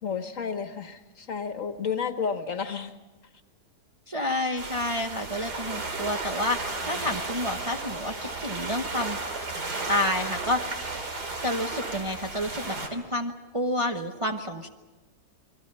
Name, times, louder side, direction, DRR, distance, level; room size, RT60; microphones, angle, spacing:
voice 1, 0.0-2.9, left 6 dB, 55° left, 9 dB, 1.5 m, -31 dB
voice 2, 4.1-9.2 9.9-10.8 11.4-14.7, left 1 dB, 20° right, 2 dB, 1.0 m, -29 dB
sound 1, 4.6-12.9, right 3 dB, 85° right, 3.3 m, -34 dB
29.0 x 22.0 x 5.5 m, 1.2 s
omnidirectional pair, 1.7 m